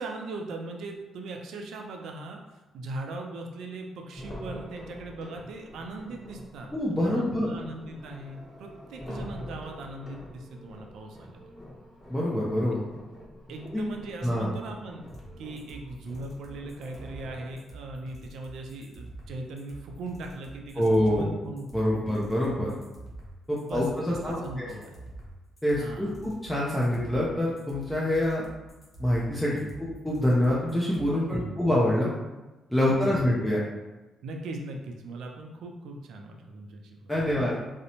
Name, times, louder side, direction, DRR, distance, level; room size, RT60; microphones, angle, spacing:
voice 1, 0.0-2.4 2.7-11.5 13.5-15.1 15.4-22.2 23.6-25.0 25.8-26.2 29.5-29.7 31.2-31.6 33.0-33.3 34.2-37.5, right 2 dB, 75° right, 2 dB, 0.4 m, -39 dB
sound 1, 4.1-17.6, left 1 dB, 20° left, 1.1 m, -45 dB
voice 2, 6.7-7.5 12.1-12.8 13.7-13.8 14.2-14.5 20.8-21.3 21.7-22.7 23.5-24.7 25.6-28.4 29.0-32.1 32.7-33.6 37.1-37.6, left 1 dB, 5° left, -6 dB, 0.5 m, -26 dB
sound 2, 15.1-31.1, right 2 dB, 45° left, 0.7 m, -46 dB
2.5 x 2.0 x 2.9 m, 1.1 s
cardioid pair, 90°, 0 cm